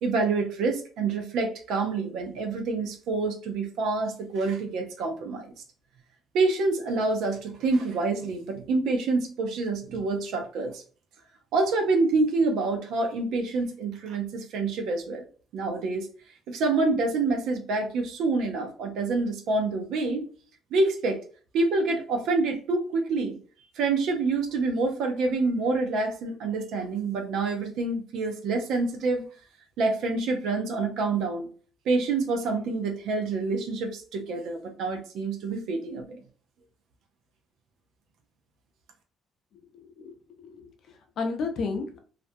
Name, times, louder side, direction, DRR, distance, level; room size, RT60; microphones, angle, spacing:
voice 1, 0.0-5.5 6.3-10.8 11.5-15.2 15.5-16.1 16.5-20.3 20.7-21.2 21.5-23.4 23.8-29.3 29.8-31.5 31.9-36.2, right 3 dB, 75° right, 3 dB, 0.5 m, -27 dB
voice 2, 39.7-42.0, left 4 dB, 60° left, 5 dB, 0.6 m, -33 dB
2.4 x 2.1 x 2.6 m, 0.40 s
cardioid pair, 135°, 0 cm